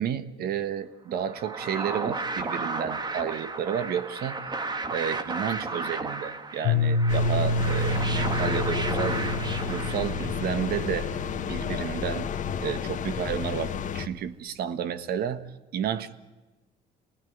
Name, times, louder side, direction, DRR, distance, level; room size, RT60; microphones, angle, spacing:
voice 1, 0.0-4.4 4.9-11.2 11.4-12.4 12.6-15.5 15.7-16.1, right 9 dB, 65° right, 1.5 m, -31 dB
sound 1, 1.2-10.6, right 3 dB, 25° right, 1.7 m, -34 dB
Piano, 6.6-12.3, left 1 dB, 65° left, 1.2 m, -29 dB
sound 2, 7.1-14.1, left 8 dB, 50° left, 1.6 m, -31 dB
28.5 x 19.0 x 9.5 m
cardioid pair, 110°, 17 cm